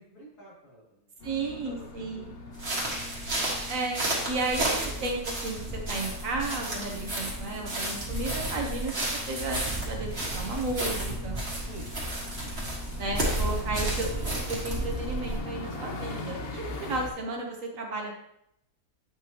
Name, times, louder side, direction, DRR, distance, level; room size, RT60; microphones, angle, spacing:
voice 1, 0.0-1.1 1.4-3.0 11.6-13.0, right 1 dB, 90° left, -8 dB, 3.8 m, -51 dB
sound 1, 1.2-17.1, left 2 dB, 45° left, 0.9 m, -41 dB
voice 2, 1.2-2.4 3.7-11.4 13.0-18.1, right 2 dB, 60° right, 1 dB, 1.5 m, -33 dB
sound 2, 2.5-15.4, right 1 dB, 40° right, 1.9 m, -32 dB
8.7 x 5.5 x 3.0 m, 0.77 s
omnidirectional pair, 1.6 m